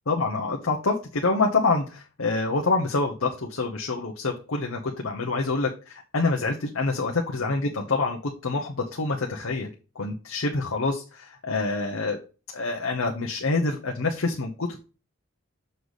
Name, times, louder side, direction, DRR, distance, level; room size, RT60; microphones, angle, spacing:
voice 1, 0.1-8.2 8.4-9.7 10.0-12.2 12.5-14.8, left 3 dB, 85° left, 1 dB, 0.9 m, -26 dB
6.7 x 4.1 x 4.8 m, 0.34 s
head